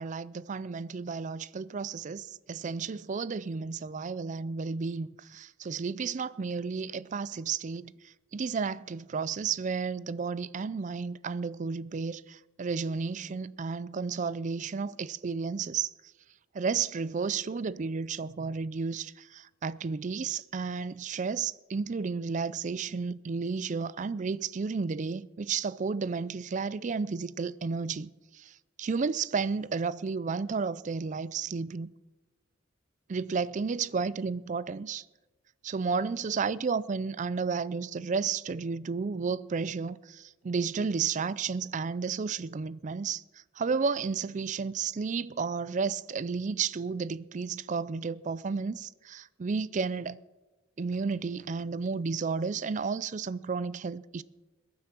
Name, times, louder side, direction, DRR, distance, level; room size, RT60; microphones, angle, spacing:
voice 1, 0.0-7.9 8.3-15.9 16.5-28.1 28.4-28.5 28.8-31.9 33.1-35.0 35.6-43.2 43.6-50.2 50.8-54.2, right 5 dB, 40° right, 0.4 m, -32 dB
21.5 x 9.5 x 6.0 m
head